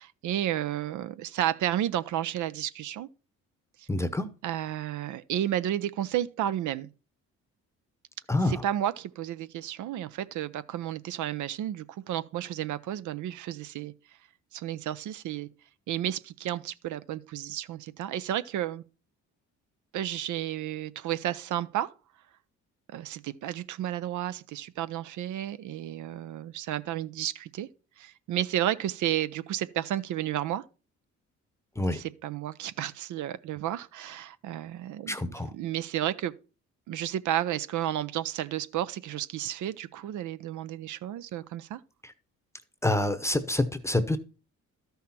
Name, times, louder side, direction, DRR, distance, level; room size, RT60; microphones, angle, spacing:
voice 1, 0.0-3.1 3.8-3.9 4.4-6.9 8.5-13.9 14.5-15.5 15.9-18.8 19.9-21.9 22.9-27.7 28.0-30.6 31.9-35.2 35.5-36.3 36.9-41.8, right 12 dB, 75° right, 0.7 m, -32 dB
voice 2, 3.9-4.3 8.3-8.6 31.8-32.0 35.1-35.5 42.0-42.1 42.8-44.2, left 2 dB, 10° left, 0.8 m, -27 dB
12.5 x 5.7 x 4.3 m
cardioid pair, 90°, 30 cm